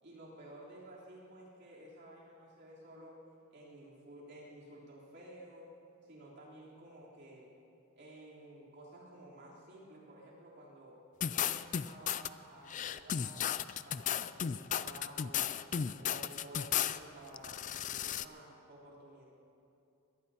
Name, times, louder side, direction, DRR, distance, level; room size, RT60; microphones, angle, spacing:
voice 1, 0.0-3.2 3.5-5.7 6.0-7.5 7.9-11.0 11.2-13.5 13.8-15.5 16.0-19.2, right 1 dB, 55° right, -6 dB, 3.8 m, -53 dB
sound 1, 11.2-12.3 12.7-17.0 17.3-18.3, left 9 dB, 35° left, 0.3 m, -35 dB
23.5 x 18.0 x 2.9 m, 2.6 s
head